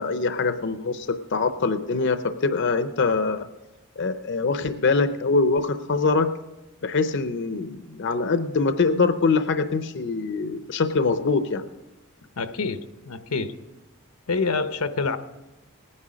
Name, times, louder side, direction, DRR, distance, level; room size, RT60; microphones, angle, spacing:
voice 1, 0.0-3.5 4.0-6.3 6.8-11.6, left 4 dB, 55° left, 10 dB, 0.6 m, -23 dB
voice 2, 12.4-13.6 14.3-15.2, left 4 dB, 85° left, 10 dB, 0.8 m, -27 dB
18.5 x 9.8 x 5.0 m, 1.0 s
head